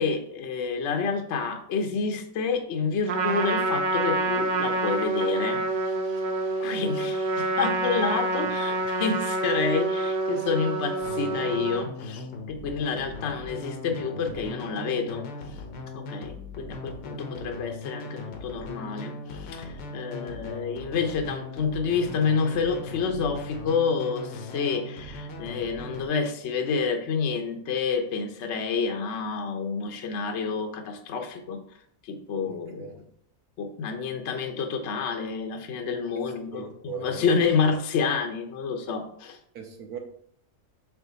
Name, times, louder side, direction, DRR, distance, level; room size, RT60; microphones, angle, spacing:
voice 1, 0.0-5.9 6.6-15.6 15.9-31.6 32.0-32.9 33.6-39.4, left 5 dB, 55° left, 4 dB, 0.9 m, -29 dB
Trumpet, 3.1-11.9, right 2 dB, 85° right, 1.4 m, -27 dB
sound 1, 11.0-26.0, left 3 dB, 85° left, 1.6 m, -39 dB
voice 2, 32.4-32.9 36.2-36.3 36.5-37.2 39.5-40.0, right 7 dB, 70° right, 3 dB, 1.2 m, -40 dB
5.8 x 4.8 x 3.9 m, 0.66 s
omnidirectional pair, 1.8 m